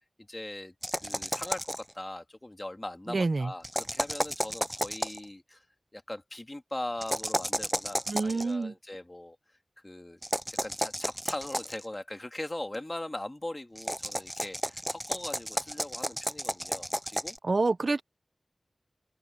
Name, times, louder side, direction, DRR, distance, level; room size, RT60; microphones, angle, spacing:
voice 1, 0.3-5.6 5.9-9.4 9.8-10.2 10.5-17.4, left 1 dB, 30° left, 2.0 m, -40 dB
sound 1, 0.8-1.9 3.6-5.2 7.0-8.4 10.2-11.8 13.8-17.4, equal, 5° right, 0.4 m, -32 dB
voice 2, 3.1-3.5 8.1-8.7 17.4-18.0, right 3 dB, 75° right, 0.9 m, -27 dB
open air
wide cardioid pair, 55°, 0 cm